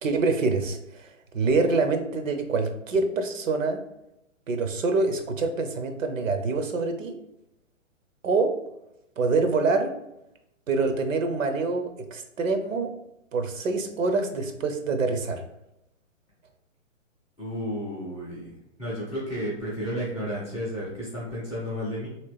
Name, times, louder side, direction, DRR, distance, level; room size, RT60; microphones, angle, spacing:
voice 1, 0.0-1.1 1.3-3.8 4.5-7.2 8.2-8.6 9.2-9.9 10.7-12.9 13.3-15.4, right 3 dB, 80° right, 6 dB, 0.7 m, -25 dB
voice 2, 17.4-22.1, equal, 5° left, -11 dB, 0.3 m, -32 dB
2.9 x 2.9 x 3.3 m, 0.86 s
hypercardioid pair, 130°, 39 cm